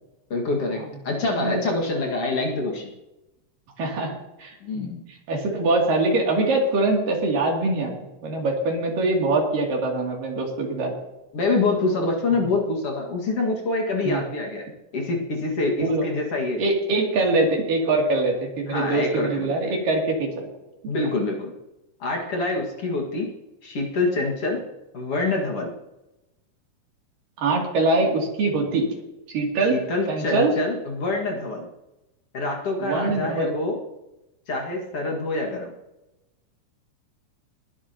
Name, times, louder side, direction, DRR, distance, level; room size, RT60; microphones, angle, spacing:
voice 1, 0.3-2.9 4.6-5.0 11.3-14.7 14.9-16.6 18.7-19.7 20.9-21.5 22.0-23.3 23.6-24.6 24.9-25.7 29.7-31.7 32.3-33.8 34.5-35.7, left 3 dB, 50° left, 0 dB, 2.7 m, -26 dB
voice 2, 3.8-4.1 4.4-4.9 5.3-7.9 8.2-10.9 14.0-14.2 15.8-16.1 16.6-20.5 27.4-28.9 29.3-29.8 30.1-30.5 32.8-33.5, right 2 dB, 85° right, -1 dB, 4.5 m, -23 dB
20.5 x 12.0 x 3.0 m, 0.96 s
omnidirectional pair, 3.8 m